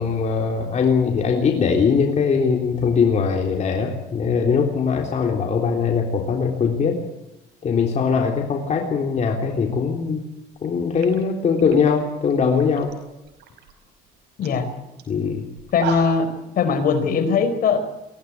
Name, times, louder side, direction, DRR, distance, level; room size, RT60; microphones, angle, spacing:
voice 1, 0.0-7.0 7.6-10.2 10.6-12.9 15.1-15.5, left 5 dB, 45° left, 1 dB, 3.6 m, -21 dB
sound 1, 10.5-10.7 11.0-12.9 13.3-13.7 14.1-14.2 14.4-14.6 15.0-15.1 15.6-16.4, right 8 dB, 85° right, 5.1 m, -35 dB
voice 2, 15.7-16.3 16.6-17.8, left 5 dB, 60° left, 8 dB, 4.5 m, -20 dB
23.0 x 16.5 x 9.5 m, 0.93 s
cardioid pair, 110°, 17 cm